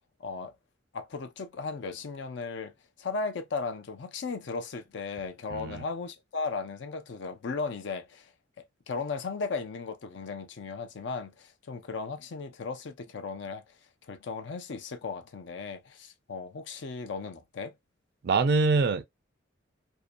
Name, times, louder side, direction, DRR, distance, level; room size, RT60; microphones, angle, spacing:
voice 1, 0.2-0.5 0.9-2.7 3.0-8.3 8.9-13.6 14.1-17.7, left 4 dB, 65° left, 0.5 m, -36 dB
voice 2, 5.5-5.8 18.2-19.0, right 4 dB, 55° right, 0.3 m, -24 dB
2.6 x 2.1 x 2.5 m
head